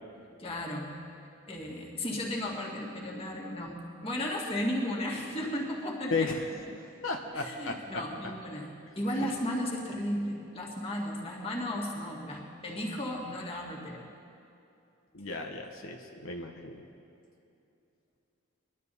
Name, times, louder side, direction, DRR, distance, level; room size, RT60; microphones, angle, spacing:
voice 1, 0.4-0.9 1.5-6.3 7.3-14.0, left 1 dB, 30° left, -3 dB, 2.0 m, -35 dB
voice 2, 6.1-6.4 7.0-8.0 9.2-9.3 15.1-16.8, left 3 dB, 80° left, 2 dB, 1.0 m, -34 dB
22.0 x 12.0 x 4.2 m, 2.7 s
head